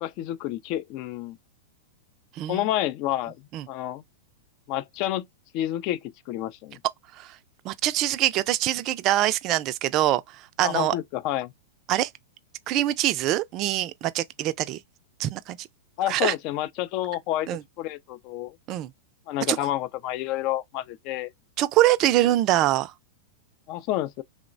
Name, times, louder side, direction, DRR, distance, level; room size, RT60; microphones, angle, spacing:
voice 1, 0.0-1.4 2.5-3.4 3.7-4.0 4.7-5.3 5.5-6.8 10.6-11.5 16.0-17.5 17.8-18.6 19.3-21.3 23.7-24.2, left 13 dB, 50° left, 0.3 m, -29 dB
voice 2, 2.4-2.7 3.5-3.7 7.2-7.3 7.6-10.2 10.6-10.9 11.9-12.1 12.7-14.8 15.2-15.7 16.1-16.3 17.5-17.6 18.7-18.9 19.5-19.6 21.6-22.9, right 14 dB, 40° right, 0.3 m, -24 dB
3.0 x 2.0 x 2.5 m
hypercardioid pair, 110°, 0 cm